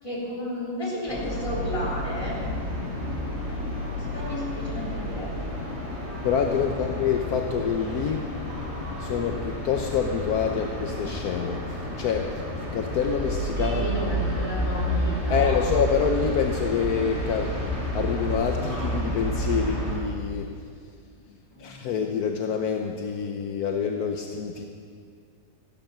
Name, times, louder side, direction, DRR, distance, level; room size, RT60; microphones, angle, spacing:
voice 1, 0.0-2.4 4.1-5.3 6.6-6.8 13.7-15.7 21.2-21.9, left 1 dB, 20° left, -6 dB, 3.4 m, -33 dB
sound 1, 1.1-19.9, equal, 10° right, 4.2 m, -30 dB
voice 2, 3.7-4.2 6.2-8.3 9.0-13.9 15.3-17.6 17.9-20.5 21.6-24.7, left 7 dB, 70° left, 3 dB, 1.3 m, -27 dB
14.5 x 12.0 x 5.9 m, 2.2 s
omnidirectional pair, 1.7 m